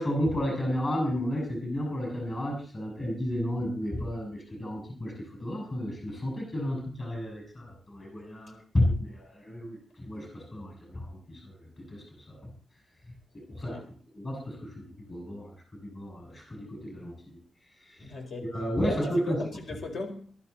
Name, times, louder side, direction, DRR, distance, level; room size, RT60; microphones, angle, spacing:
voice 1, 0.0-12.5 13.3-13.8 14.1-15.5 15.8-17.4 17.9-18.0 18.5-19.4, equal, 30° left, 7.9 m, -32 dB
voice 2, 18.0-18.5 18.8-19.0 19.3-20.3, left 2 dB, 60° left, 4.7 m, -38 dB
22.5 x 13.0 x 4.2 m
wide cardioid pair, 170°, 0 cm